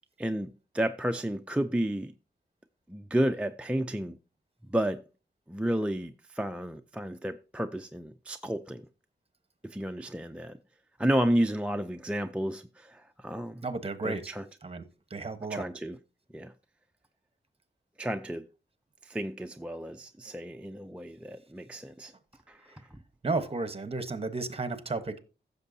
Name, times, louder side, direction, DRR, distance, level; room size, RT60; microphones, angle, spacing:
voice 1, 0.2-2.1 2.9-4.2 4.7-5.0 5.5-8.9 9.6-10.6 11.0-13.7 14.0-14.4 15.5-16.0 16.3-16.5 18.0-18.5 19.0-22.1 22.5-22.6, right 1 dB, 5° right, 0.4 m, -31 dB
voice 2, 13.6-14.3 14.6-14.8 15.1-15.6 22.7-22.8 23.2-25.2, right 3 dB, 30° right, 1.1 m, -33 dB
15.5 x 6.8 x 2.7 m
wide cardioid pair, 120°, 18 cm